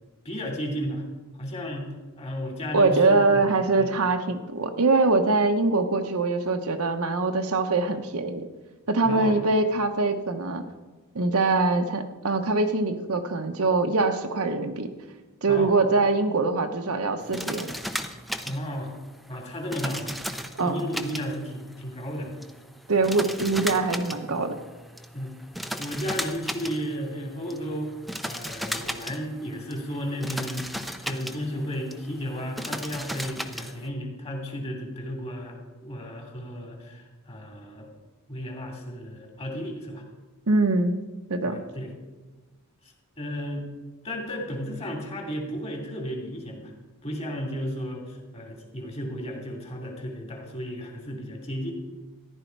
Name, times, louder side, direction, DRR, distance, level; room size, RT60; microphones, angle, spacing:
voice 1, 0.2-1.0 1.3-3.9 9.0-9.4 15.5-15.8 18.4-18.9 19.3-20.2 20.6-22.3 25.1-25.3 25.8-27.9 28.2-30.7 31.0-37.9 38.3-40.0 41.4-41.9 42.8-43.7 44.0-46.7 47.0-51.7, equal, 30° left, 0 dB, 2.7 m, -34 dB
voice 2, 2.7-8.4 8.9-10.6 11.1-14.9 15.4-17.7 20.6-20.8 22.9-24.6 40.5-41.0 41.3-41.6, right 3 dB, 70° right, 6 dB, 1.0 m, -23 dB
sound 1, 17.2-33.9, equal, ahead, 0.6 m, -36 dB
14.5 x 11.0 x 4.6 m, 1.2 s
head